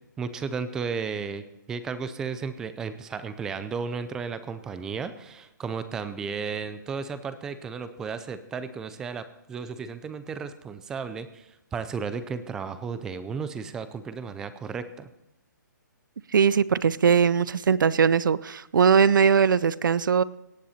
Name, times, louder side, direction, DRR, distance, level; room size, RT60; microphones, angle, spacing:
voice 1, 0.2-15.1, right 5 dB, 5° right, 12 dB, 0.4 m, -34 dB
voice 2, 16.3-20.2, right 6 dB, 80° right, 19 dB, 0.6 m, -20 dB
17.5 x 8.6 x 4.2 m, 0.92 s
hypercardioid pair, 165°, 11 cm